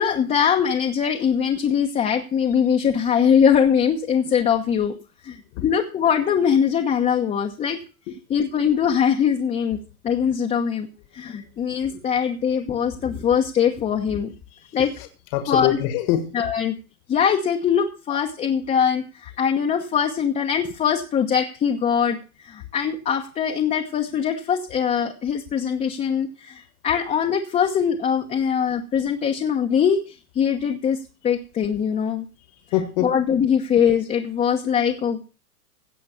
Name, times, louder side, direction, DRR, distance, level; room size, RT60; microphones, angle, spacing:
voice 1, 0.0-4.9 5.2-5.4 5.6-7.8 8.3-9.8 10.0-10.9 11.1-14.3 14.7-14.9 15.5-15.8 16.3-16.8 17.1-22.2 22.4-32.2 33.0-35.2, left 7 dB, 15° left, 2 dB, 1.0 m, -22 dB
voice 2, 14.5-16.4 24.1-24.2 32.4-33.1, left 11 dB, 40° left, 9 dB, 1.6 m, -26 dB
16.5 x 5.7 x 7.0 m, 0.35 s
hypercardioid pair, 135°, 43 cm